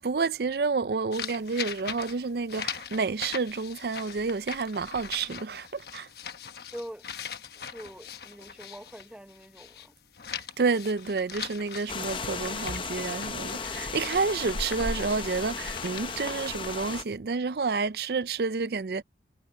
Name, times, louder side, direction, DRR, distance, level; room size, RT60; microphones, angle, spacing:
voice 1, 0.0-6.1 10.6-19.0, right 4 dB, 60° right, 0.5 m, -29 dB
sound 1, 1.1-9.9 10.1-17.1, left 7 dB, 60° left, 1.1 m, -41 dB
voice 2, 6.6-7.1 7.5-9.9, equal, 5° right, 0.8 m, -44 dB
sound 2, 11.9-17.0, left 4 dB, 30° left, 0.8 m, -35 dB
head